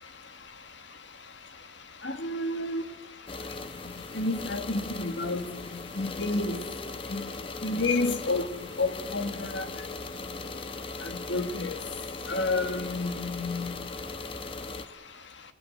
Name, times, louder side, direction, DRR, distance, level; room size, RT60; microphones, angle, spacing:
voice 1, 2.0-2.8 4.2-5.4 6.0-6.6 7.1-7.2 7.6-8.5 8.8-9.6 11.3-11.7 12.3-13.7, left 2 dB, 85° left, 2.0 m, -29 dB
sound 1, 3.3-14.9, left 3 dB, 30° left, 1.0 m, -39 dB
20.5 x 19.0 x 8.0 m
head